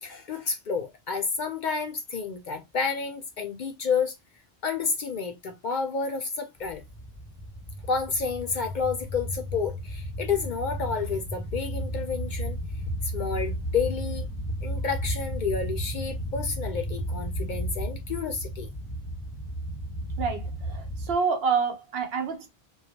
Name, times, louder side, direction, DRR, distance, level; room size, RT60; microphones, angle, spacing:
voice 1, 0.0-4.1 4.6-6.8 7.9-12.6 13.0-14.3 14.6-18.7, left 5 dB, 60° left, 0.6 m, -30 dB
sound 1, 6.6-21.1, equal, 5° right, 0.8 m, -33 dB
voice 2, 20.2-22.5, right 5 dB, 75° right, 0.9 m, -28 dB
3.0 x 2.3 x 2.6 m
omnidirectional pair, 1.1 m